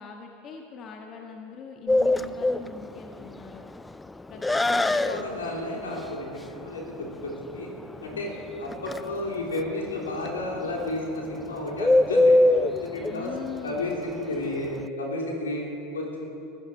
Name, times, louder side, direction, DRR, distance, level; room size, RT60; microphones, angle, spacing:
voice 1, 0.0-3.6 4.3-5.4 8.1-8.3 13.1-13.8, left 6 dB, 35° left, 2 dB, 1.5 m, -41 dB
Bird, 1.9-14.9, left 2 dB, 10° left, 0.3 m, -25 dB
voice 2, 4.3-7.7 8.0-8.3 8.6-13.3 13.6-16.3, left 1 dB, 80° left, -1 dB, 3.4 m, -32 dB
19.5 x 15.0 x 4.5 m, 2.9 s
figure-of-eight pair, 80°, 0 cm